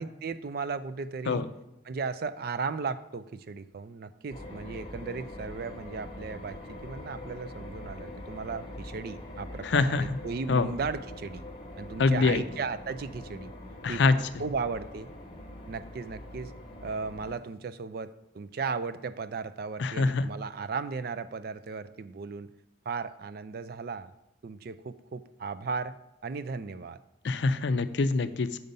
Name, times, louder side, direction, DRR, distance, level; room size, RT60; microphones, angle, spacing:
voice 1, 0.0-1.5 1.8-11.4 11.8-13.5 13.9-14.0 14.4-15.1 15.7-16.5 16.8-22.5 22.9-24.1 24.4-26.0 26.2-27.0, right 4 dB, 50° right, 13 dB, 0.3 m, -36 dB
sound 1, 4.3-17.3, left 1 dB, 25° left, 1.2 m, -43 dB
voice 2, 9.6-10.0 10.5-10.7 12.0-12.4 13.8-14.2 19.8-20.3 27.2-28.6, left 3 dB, 60° left, 12 dB, 0.4 m, -24 dB
7.9 x 5.3 x 5.3 m, 0.87 s
head